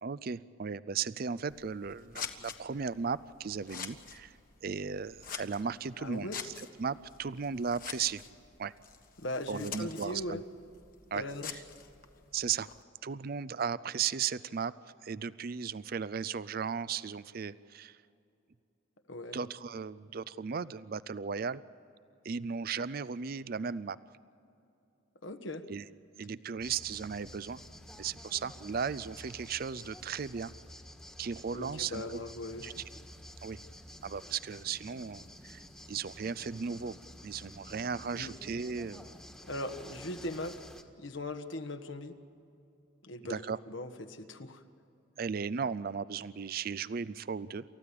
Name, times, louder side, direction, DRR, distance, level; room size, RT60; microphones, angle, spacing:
voice 1, 0.0-8.2 8.6-8.7 9.5-10.4 11.1-11.2 11.5-11.6 12.3-12.7 13.0-14.7 15.0-18.0 19.3-21.6 22.2-24.0 25.7-25.9 26.2-27.6 28.0-30.5 31.2-32.2 32.6-32.7 33.4-33.6 34.0-35.6 35.9-37.0 37.2-39.1 43.3-43.6 45.2-47.6, right 6 dB, 45° right, 17 dB, 0.4 m, -36 dB
Scissors, 1.4-12.8, left 7 dB, 45° left, 1.4 m, -47 dB
voice 2, 6.0-6.4 9.2-10.4 11.1-11.5 19.1-19.4 25.2-25.7 31.5-32.7 38.1-38.3 39.4-40.5 41.0-42.2 43.0-44.6, left 1 dB, 70° left, 8 dB, 1.5 m, -39 dB
sound 1, 26.6-40.8, equal, 5° left, 1.5 m, -50 dB
29.0 x 14.5 x 8.5 m, 2.7 s
head